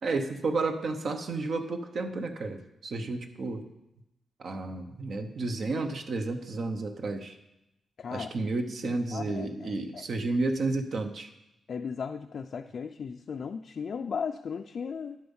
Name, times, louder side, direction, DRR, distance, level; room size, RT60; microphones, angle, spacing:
voice 1, 0.0-3.7 4.4-7.4 8.1-11.3, right 3 dB, 55° right, 7 dB, 1.0 m, -31 dB
voice 2, 8.0-8.3 8.8-10.0 11.7-15.2, left 6 dB, 55° left, 4 dB, 0.4 m, -36 dB
11.0 x 7.6 x 5.5 m, 0.91 s
cardioid pair, 110°, 0 cm